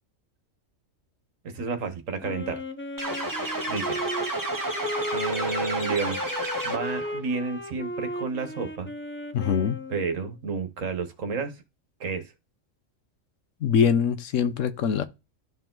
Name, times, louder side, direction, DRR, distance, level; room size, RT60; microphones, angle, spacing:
voice 1, 1.4-2.6 3.7-4.0 5.1-6.2 6.6-8.9 9.9-11.6 12.0-12.3, right 4 dB, 75° right, 1.5 m, -31 dB
Wind instrument woodwind instrument, 2.2-10.3, left 1 dB, 15° left, 0.4 m, -36 dB
sound 1, 3.0-7.1, right 1 dB, 15° right, 1.4 m, -31 dB
voice 2, 9.3-9.8 13.6-15.0, left 7 dB, 70° left, 1.1 m, -23 dB
12.0 x 4.7 x 3.8 m
omnidirectional pair, 1.4 m